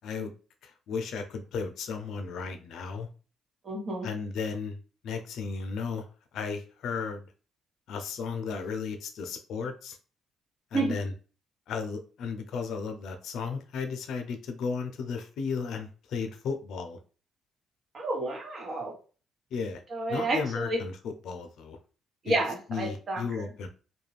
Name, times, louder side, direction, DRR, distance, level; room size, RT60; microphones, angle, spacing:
voice 1, 0.0-0.3 0.6-3.1 4.0-4.8 5.0-6.0 6.3-7.2 7.9-10.0 10.7-11.1 11.7-17.0 19.5-19.8 20.1-21.8 22.3-22.4 22.7-23.7, left 5 dB, 75° left, 6 dB, 0.4 m, -34 dB
voice 2, 3.6-4.1 10.7-10.9 17.9-18.9 19.9-20.8 22.2-23.2, right 2 dB, 45° right, 0 dB, 1.1 m, -30 dB
2.4 x 2.1 x 3.2 m, 0.36 s
cardioid pair, 90°, 0 cm